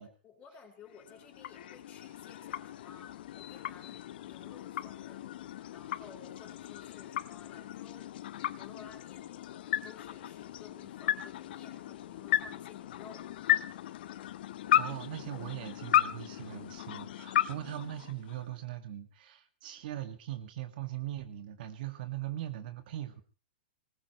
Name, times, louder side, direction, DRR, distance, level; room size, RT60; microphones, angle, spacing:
voice 1, 0.0-5.3 5.7-8.1 8.6-13.3, left 6 dB, 25° left, 2 dB, 4.7 m, -55 dB
sound 1, 0.9-18.6, left 12 dB, 60° left, 0.8 m, -35 dB
voice 2, 14.7-23.2, right 12 dB, 55° right, 8 dB, 1.9 m, -40 dB
20.5 x 19.5 x 3.1 m, 0.35 s
hypercardioid pair, 145°, 6 cm